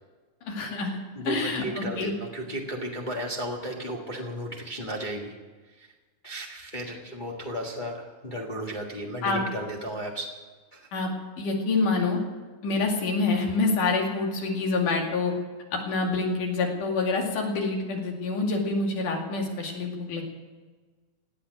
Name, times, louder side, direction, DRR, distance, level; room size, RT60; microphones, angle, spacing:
voice 1, 0.4-2.1 9.2-9.4 10.9-11.1 11.4-12.2 12.6-15.3 15.7-20.2, left 3 dB, 80° left, 1 dB, 3.9 m, -27 dB
voice 2, 1.1-5.3 5.8-5.9 6.2-10.3 10.7-10.9, right 1 dB, 25° left, -1 dB, 1.0 m, -34 dB
17.5 x 8.9 x 9.1 m, 1.3 s
omnidirectional pair, 3.6 m